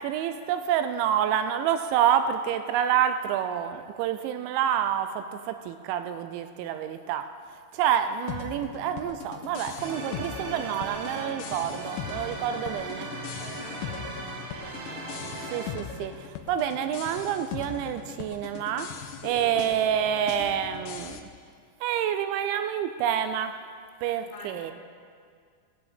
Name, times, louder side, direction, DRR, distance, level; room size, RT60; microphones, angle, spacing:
voice 1, 0.0-7.2 7.7-13.1 15.5-18.9 19.2-21.2 21.8-23.6 24.0-24.7, right 9 dB, 85° right, 8 dB, 2.8 m, -28 dB
sound 1, 8.3-21.2, left 8 dB, 85° left, 3.0 m, -40 dB
sound 2, 9.8-15.7, right 2 dB, 65° right, 2.1 m, -38 dB
voice 2, 12.5-14.4 19.2-19.6 24.2-24.7, left 2 dB, 65° left, -2 dB, 3.5 m, -46 dB
16.5 x 10.5 x 3.5 m, 2.1 s
omnidirectional pair, 5.4 m